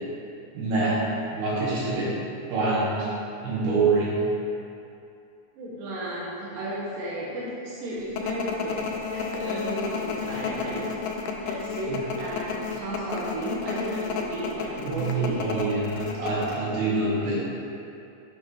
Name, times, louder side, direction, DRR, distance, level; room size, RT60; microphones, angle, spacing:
voice 1, 0.5-1.1 1.3-2.1 2.5-3.1 3.4-4.2 11.9-12.0 14.8-17.4, right 3 dB, 70° right, -8 dB, 2.7 m, -25 dB
voice 2, 5.6-15.4, right 1 dB, 85° right, -7 dB, 2.6 m, -33 dB
sound 1, 8.2-16.6, left 6 dB, 90° left, 2.2 m, -31 dB
6.3 x 5.6 x 3.1 m, 2.7 s
omnidirectional pair, 3.8 m